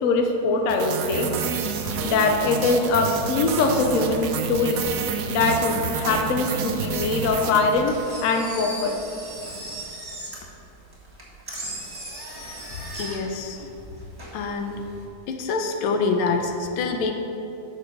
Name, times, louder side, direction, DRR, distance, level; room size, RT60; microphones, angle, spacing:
voice 1, 0.0-1.3 1.8-4.9 5.3-7.9 8.2-9.0, left 3 dB, 65° left, 4 dB, 0.8 m, -22 dB
sound 1, 0.7-8.2, right 6 dB, 85° right, 0.7 m, -29 dB
Engine, 7.7-15.0, right 1 dB, 10° right, 1.5 m, -38 dB
voice 2, 13.0-13.7 14.3-14.8 15.3-17.1, left 4 dB, 90° left, 5 dB, 1.6 m, -26 dB
6.0 x 5.9 x 6.9 m, 2.7 s
omnidirectional pair, 2.3 m